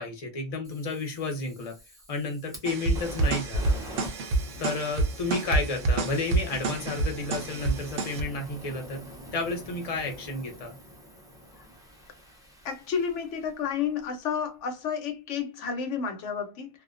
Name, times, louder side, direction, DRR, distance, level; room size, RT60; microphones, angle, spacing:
voice 1, 0.0-1.8 2.1-3.8 4.6-9.0 9.3-10.7, left 3 dB, 40° left, 0.6 m, -32 dB
Fire, 0.6-13.8, equal, 5° right, 0.3 m, -45 dB
sound 1, 2.7-8.2, right 3 dB, 60° right, 0.7 m, -28 dB
voice 2, 12.6-16.7, left 7 dB, 75° left, 0.9 m, -31 dB
2.4 x 2.1 x 2.4 m
omnidirectional pair, 1.3 m